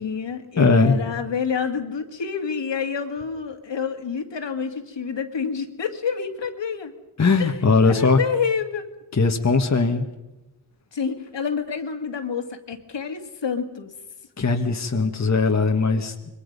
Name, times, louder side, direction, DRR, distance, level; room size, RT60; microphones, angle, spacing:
voice 1, 0.0-6.9 7.4-7.6 7.8-8.9 10.9-13.9, left 6 dB, 70° left, 6 dB, 2.1 m, -28 dB
voice 2, 0.6-1.0 7.2-8.2 9.1-10.1 14.4-16.1, left 4 dB, 35° left, 4 dB, 1.5 m, -19 dB
26.0 x 22.5 x 5.4 m, 0.99 s
wide cardioid pair, 100°, 45 cm